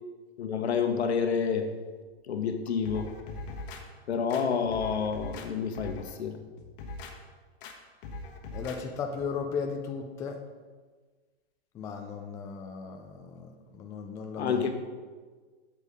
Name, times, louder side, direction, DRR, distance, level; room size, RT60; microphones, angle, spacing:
voice 1, 0.4-1.7 2.3-3.1 4.1-6.4 14.4-14.7, left 6 dB, 80° left, 6 dB, 1.1 m, -29 dB
sound 1, 2.9-3.8 4.3-5.5 5.7-6.1 6.6-7.1 7.6-7.7 8.0-8.8 9.2-9.3, left 2 dB, 55° left, 1.3 m, -41 dB
voice 2, 8.5-10.4 11.7-14.6, left 5 dB, 10° left, 3 dB, 0.3 m, -36 dB
8.0 x 7.3 x 3.6 m, 1.4 s
hypercardioid pair, 135°, 32 cm